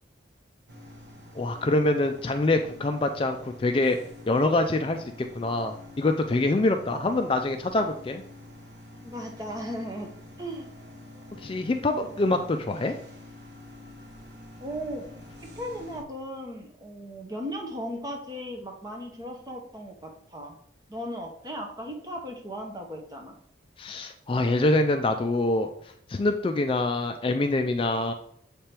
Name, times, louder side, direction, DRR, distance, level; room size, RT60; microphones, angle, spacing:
sound 1, 0.7-16.0, left 1 dB, 60° right, 1.3 m, -47 dB
voice 1, 1.3-4.0 4.3-8.2 11.4-12.9 23.8-28.1, left 2 dB, 30° left, 6 dB, 0.3 m, -25 dB
voice 2, 6.9-7.3 9.0-10.1 10.4-10.7 14.6-15.1 15.6-20.6 20.9-23.4, equal, 20° right, 2 dB, 0.9 m, -37 dB
7.4 x 3.5 x 4.4 m, 0.68 s
head